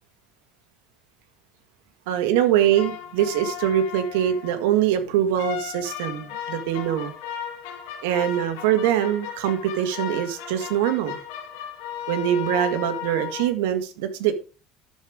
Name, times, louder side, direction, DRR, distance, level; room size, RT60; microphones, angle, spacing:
voice 1, 2.1-7.1 8.0-11.1 12.1-14.3, right 11 dB, 85° right, 8 dB, 1.7 m, -23 dB
sound 1, 2.6-4.6 5.4-13.5, left 10 dB, 85° left, 3.4 m, -35 dB
12.5 x 5.2 x 5.0 m, 0.35 s
supercardioid pair, 115°, 0 cm